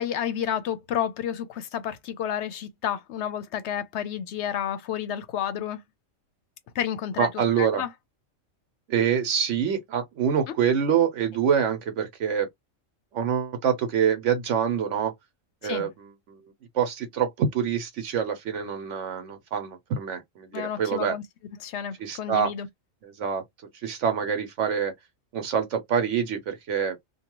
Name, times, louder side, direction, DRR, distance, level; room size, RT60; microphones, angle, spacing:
voice 1, 0.0-5.8 6.7-7.9 15.6-15.9 20.5-21.2 21.6-22.7, left 9 dB, 65° left, 0.8 m, -30 dB
voice 2, 7.2-7.8 8.9-12.5 13.1-15.1 15.6-16.4 16.7-21.2 22.0-22.5 23.0-23.4 23.8-24.9 25.3-27.0, right 7 dB, 70° right, 1.0 m, -26 dB
2.7 x 2.3 x 2.9 m
omnidirectional pair, 1.4 m